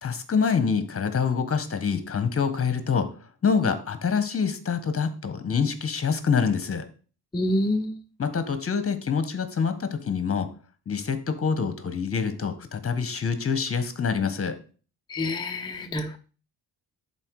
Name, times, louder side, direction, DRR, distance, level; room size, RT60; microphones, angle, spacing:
voice 1, 0.0-3.1 3.4-6.9 8.2-10.5 10.9-14.6, left 6 dB, 35° left, 10 dB, 1.4 m, -26 dB
voice 2, 7.3-8.0 15.1-16.2, left 1 dB, 10° left, 4 dB, 0.5 m, -27 dB
11.0 x 4.4 x 4.8 m, 0.38 s
cardioid pair, 120°, 41 cm